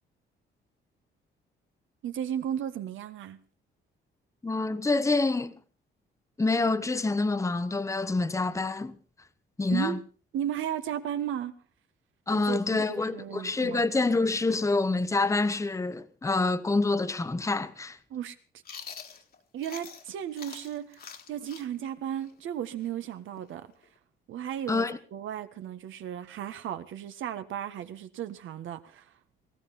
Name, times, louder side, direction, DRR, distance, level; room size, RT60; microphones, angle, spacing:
voice 1, 2.0-3.4 9.7-10.0 10.3-11.5 12.3-13.8 18.1-18.3 19.5-23.7 24.3-29.1, right 10 dB, 80° right, 1.5 m, -35 dB
voice 2, 4.4-5.5 6.4-9.0 9.6-10.0 12.3-18.0 24.7-25.0, left 3 dB, 15° left, 1.0 m, -27 dB
Chewing mastication, 18.6-20.1 20.4-24.0, left 6 dB, 50° left, 1.9 m, -45 dB
19.0 x 15.5 x 4.3 m
cardioid pair, 90°, 20 cm